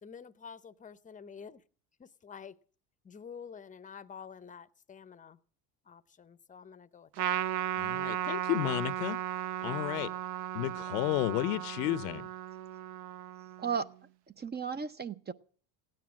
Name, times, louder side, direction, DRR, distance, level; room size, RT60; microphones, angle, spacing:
voice 1, 0.0-1.6 2.0-2.6 3.0-5.4 5.9-7.4, left 6 dB, 15° left, 0.8 m, -49 dB
Trumpet, 7.2-13.9, right 12 dB, 55° right, 1.0 m, -36 dB
voice 2, 7.8-9.2 9.6-10.1 10.5-12.3, left 15 dB, 80° left, 0.9 m, -32 dB
voice 3, 13.6-13.9 14.4-15.3, right 6 dB, 20° right, 0.6 m, -34 dB
16.5 x 9.5 x 7.4 m
supercardioid pair, 100°, 47 cm